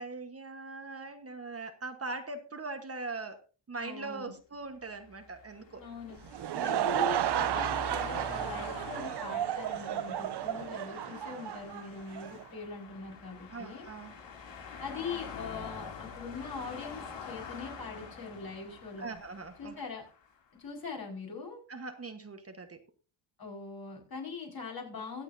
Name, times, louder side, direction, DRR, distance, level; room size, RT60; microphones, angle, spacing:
voice 1, 0.0-3.4 3.7-5.8 6.5-6.9 13.5-14.1 19.0-19.7 21.7-22.8, right 3 dB, 30° right, 6 dB, 1.3 m, -41 dB
voice 2, 3.8-4.3 5.8-6.2 6.6-13.9 14.8-19.1 19.6-20.0 20.6-21.6 23.4-25.2, left 5 dB, 50° left, 1 dB, 5.0 m, -42 dB
sound 1, 4.9-20.3, left 5 dB, 65° left, 2.8 m, -46 dB
Laughter / Crowd, 6.1-12.4, right 11 dB, 60° right, 0.7 m, -33 dB
23.5 x 8.2 x 2.7 m, 0.34 s
wide cardioid pair, 135°, 47 cm